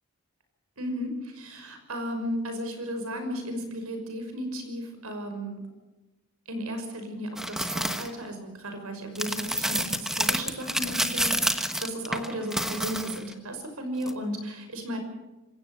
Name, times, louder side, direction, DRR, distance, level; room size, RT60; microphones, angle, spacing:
voice 1, 0.8-5.6 6.5-15.0, equal, 80° right, 6 dB, 5.9 m, -34 dB
sound 1, 7.4-8.1 9.2-13.3 14.0-14.1, right 1 dB, ahead, 1.1 m, -28 dB
26.5 x 16.5 x 6.9 m, 1.1 s
head